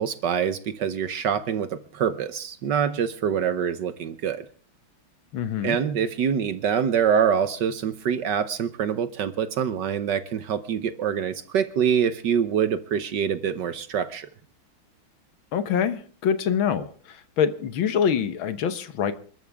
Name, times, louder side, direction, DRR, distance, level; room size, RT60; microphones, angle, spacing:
voice 1, 0.0-4.4 5.6-14.3, right 8 dB, 60° right, 13 dB, 1.4 m, -25 dB
voice 2, 5.3-5.8 15.5-19.1, left 7 dB, 70° left, 12 dB, 1.8 m, -25 dB
28.5 x 12.5 x 3.5 m, 0.43 s
omnidirectional pair, 2.3 m